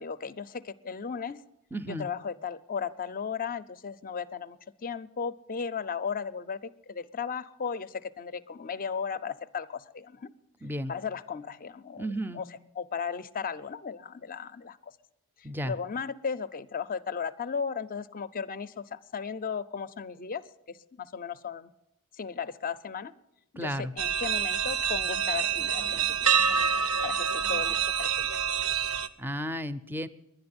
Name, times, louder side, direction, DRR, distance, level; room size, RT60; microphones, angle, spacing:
voice 1, 0.0-1.4 1.8-10.3 10.9-14.9 15.6-20.4 20.7-21.7 22.2-23.1 23.5-26.4 27.0-28.4, left 6 dB, 40° left, 14 dB, 0.5 m, -36 dB
voice 2, 1.7-2.1 10.6-10.9 12.0-12.4 15.4-15.7 23.6-23.9 29.2-30.1, equal, 10° right, 14 dB, 0.5 m, -33 dB
sound 1, 24.0-29.1, right 7 dB, 80° right, 0.7 m, -27 dB
11.0 x 10.5 x 9.5 m, 0.85 s
head